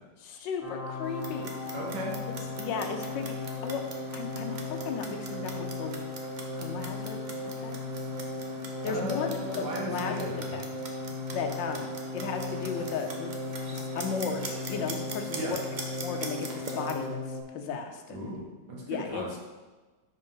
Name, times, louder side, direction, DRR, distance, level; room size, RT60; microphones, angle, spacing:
voice 1, 0.2-1.6 2.6-3.8 4.1-5.9 6.6-7.8 8.8-9.3 9.5-10.6 11.3-13.3 13.7-15.6 16.0-18.3 18.9-19.4, left 6 dB, 80° left, 5 dB, 1.4 m, -35 dB
sound 1, 0.6-17.4, left 2 dB, ahead, 0.6 m, -37 dB
Clock, 1.0-17.1, right 2 dB, 90° right, 0.4 m, -43 dB
voice 2, 1.7-2.2 8.8-10.6 15.4-15.5 18.1-19.4, equal, 70° right, -3 dB, 2.0 m, -36 dB
5.3 x 4.4 x 5.5 m, 1.2 s
omnidirectional pair, 2.0 m